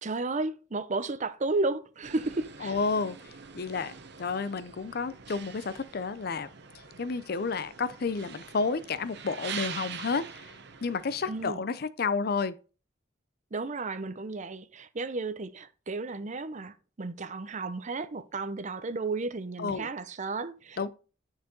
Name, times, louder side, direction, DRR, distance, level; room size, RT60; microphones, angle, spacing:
voice 1, 0.0-2.8 11.3-11.6 13.5-20.9, right 3 dB, 40° right, 0.6 m, -33 dB
sound 1, 2.0-11.5, right 7 dB, 60° right, 1.0 m, -44 dB
voice 2, 2.6-3.2 3.5-3.9 4.2-6.5 7.0-10.5 10.8-12.6 19.6-19.9 20.8-20.9, left 4 dB, 55° left, 0.6 m, -31 dB
9.4 x 4.6 x 3.9 m
head